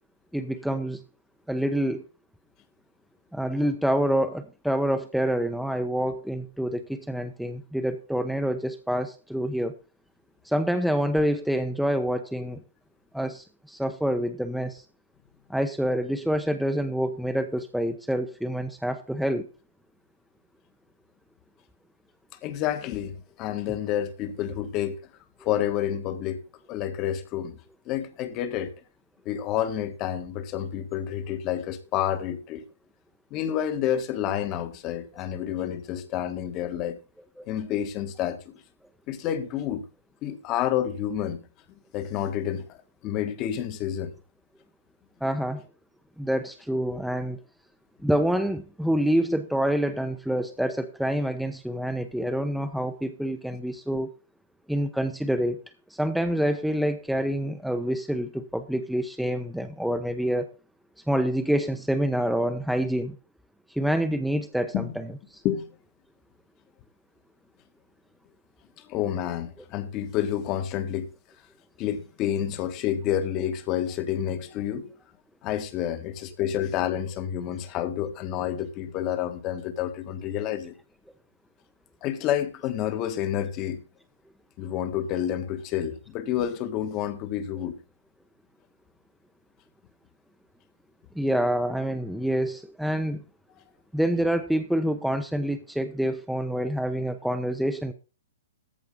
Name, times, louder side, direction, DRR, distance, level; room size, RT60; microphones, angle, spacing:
voice 1, 0.3-1.0 1.5-2.0 3.3-9.7 10.4-12.6 13.1-14.8 15.5-19.5 37.4-37.5 45.2-45.6 46.2-47.4 48.0-54.1 54.7-55.6 55.9-60.5 61.1-63.2 63.7-65.4 91.1-93.2 93.9-97.9, equal, ahead, 0.9 m, -27 dB
voice 2, 22.4-25.0 25.4-26.4 26.7-27.6 27.8-28.7 29.2-32.6 33.3-37.0 37.5-38.5 39.1-39.8 40.2-41.4 41.9-42.8 43.0-44.1 64.7-64.9 65.4-65.7 68.8-71.1 71.8-74.9 75.4-80.7 82.0-83.8 84.6-87.8, left 10 dB, 35° left, 1.4 m, -29 dB
14.0 x 4.8 x 5.3 m
figure-of-eight pair, 120°, 0 cm